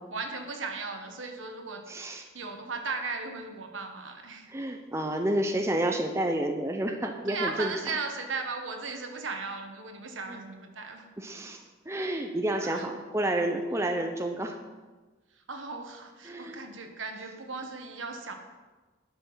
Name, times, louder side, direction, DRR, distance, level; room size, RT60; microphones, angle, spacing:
voice 1, 0.1-4.5 7.0-11.1 12.6-12.9 15.3-18.3, right 4 dB, 85° right, 5 dB, 1.3 m, -37 dB
voice 2, 1.9-2.2 4.5-7.7 10.3-10.4 11.2-14.5 16.3-16.6, right 1 dB, 15° right, 4 dB, 0.7 m, -30 dB
12.0 x 6.0 x 5.6 m, 1.3 s
head